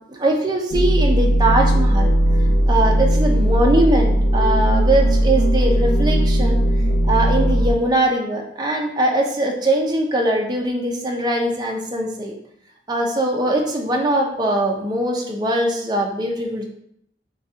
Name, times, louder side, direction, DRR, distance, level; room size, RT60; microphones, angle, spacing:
voice 1, 0.1-2.1 2.7-6.6 6.9-12.3 12.9-16.6, right 1 dB, 20° right, 0 dB, 0.6 m, -21 dB
sound 1, 0.7-7.7, right 1 dB, 85° left, 0.7 m, -17 dB
5.9 x 2.3 x 2.8 m, 0.73 s
head